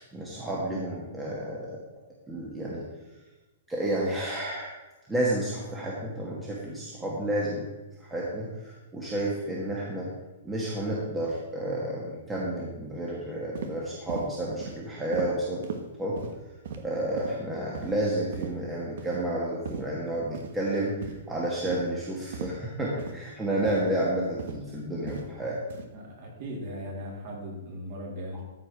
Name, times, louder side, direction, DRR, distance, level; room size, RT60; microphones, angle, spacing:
voice 1, 0.0-1.8 2.3-2.8 3.7-4.7 5.1-7.7 8.0-10.1 10.4-15.7 16.0-16.2 16.8-25.6, right 1 dB, 5° right, -5 dB, 1.5 m, -31 dB
sound 1, 13.6-13.7 14.1-14.3 14.6-14.8 15.1-15.3 15.6-15.8 16.2-16.3 16.7-16.8 17.2-17.4 17.7-17.9 18.3-18.5 19.0-19.2 19.7-19.8 20.3-20.5 21.0-21.2 21.7-21.8 22.3-22.5 23.0-23.2 23.6-23.8 24.4-24.6 25.1-25.3 25.7-25.9, right 6 dB, 60° right, 1.4 m, -37 dB
voice 2, 25.9-28.4, equal, 40° right, -1 dB, 3.3 m, -38 dB
13.5 x 5.0 x 6.0 m, 1.1 s
hypercardioid pair, 170°, 0 cm